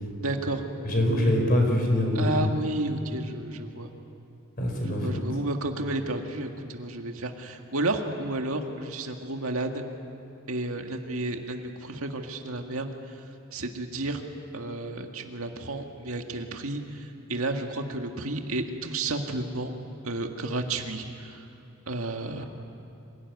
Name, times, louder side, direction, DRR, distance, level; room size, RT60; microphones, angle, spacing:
voice 1, 0.2-0.6 2.2-3.9 4.9-9.8 10.5-12.9 13.5-14.2 14.5-19.7 20.0-21.4 21.9-22.4, right 2 dB, 85° right, 4 dB, 2.0 m, -31 dB
voice 2, 0.8-2.2 4.6-5.2, left 1 dB, 40° left, 2 dB, 4.8 m, -24 dB
26.5 x 18.0 x 9.6 m, 2.8 s
head